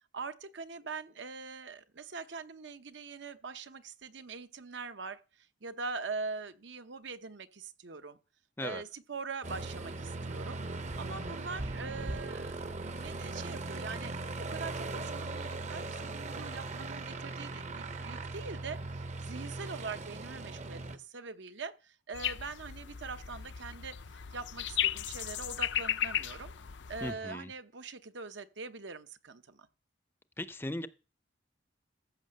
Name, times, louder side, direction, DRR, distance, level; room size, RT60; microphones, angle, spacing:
voice 1, 0.1-8.2 8.6-10.6 11.0-12.6 13.0-26.5 26.9-29.7, right 4 dB, 75° right, 0.9 m, -43 dB
Aircraft, 9.4-21.0, right 2 dB, 35° right, 0.7 m, -39 dB
sound 1, 22.1-27.1, left 10 dB, 70° left, 0.5 m, -35 dB
voice 2, 27.0-27.5 30.4-30.9, left 1 dB, 10° left, 0.5 m, -37 dB
14.5 x 6.0 x 6.6 m
head